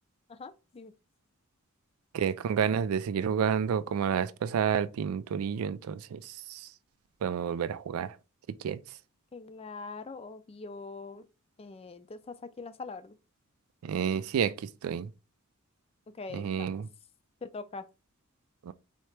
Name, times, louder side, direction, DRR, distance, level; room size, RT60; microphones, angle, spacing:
voice 1, 0.3-0.9 9.3-11.2 11.6-13.2 16.2-16.8 17.4-17.9, left 4 dB, 30° left, 0.4 m, -43 dB
voice 2, 2.1-6.7 7.2-8.1 8.6-8.8 13.8-15.1 16.3-16.9 18.6-18.7, right 7 dB, 90° right, 0.4 m, -30 dB
4.4 x 2.9 x 3.2 m
head